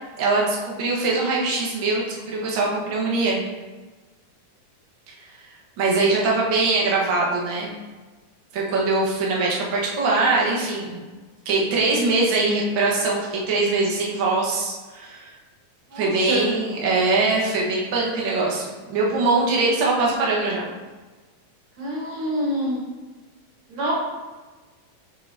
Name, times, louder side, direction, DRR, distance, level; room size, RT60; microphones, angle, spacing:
voice 1, 0.2-3.4 5.8-7.7 8.5-11.0 11.4-15.3 15.9-20.7, right 3 dB, 60° right, -3 dB, 1.2 m, -22 dB
voice 2, 15.9-16.5 21.8-22.8 23.7-23.9, equal, 45° right, -5 dB, 1.8 m, -26 dB
7.7 x 3.8 x 3.5 m, 1.3 s
omnidirectional pair, 3.8 m